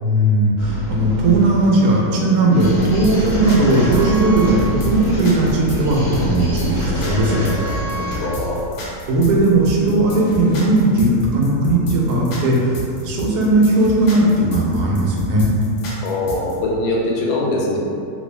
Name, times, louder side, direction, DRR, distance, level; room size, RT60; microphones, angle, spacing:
voice 1, 0.0-4.6 4.8-7.4 9.1-15.5, right 2 dB, 80° right, -3 dB, 1.2 m, -17 dB
sound 1, 0.6-8.5, equal, 35° left, 1.0 m, -27 dB
sound 2, 2.6-16.6, left 1 dB, 65° left, 0.8 m, -31 dB
Thunder / Explosion, 2.7-10.9, right 1 dB, 65° right, 0.6 m, -30 dB
voice 2, 8.2-8.6 16.0-17.8, left 2 dB, 80° left, -3 dB, 1.1 m, -22 dB
2.9 x 2.6 x 3.2 m, 2.5 s
omnidirectional pair, 1.7 m